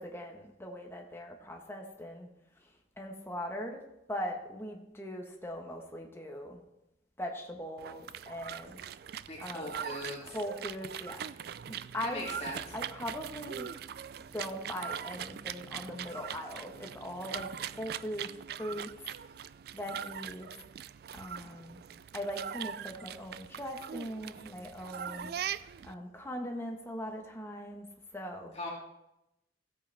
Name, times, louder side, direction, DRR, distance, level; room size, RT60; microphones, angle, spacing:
voice 1, 0.0-2.3 3.0-3.8 4.1-6.6 7.2-8.8 9.4-9.7 10.2-11.3 11.7-12.3 12.7-13.7 14.3-18.3 18.6-18.9 19.7-20.5 21.1-21.8 22.1-25.3 25.8-27.9 28.1-28.5, equal, 15° left, 1 dB, 1.3 m, -40 dB
sound 1, 7.8-25.9, right 9 dB, 55° right, 0.3 m, -41 dB
voice 2, 9.3-10.3 12.0-12.6 28.5-28.7, left 2 dB, 35° left, -4 dB, 2.6 m, -40 dB
15.5 x 8.1 x 3.5 m, 0.89 s
head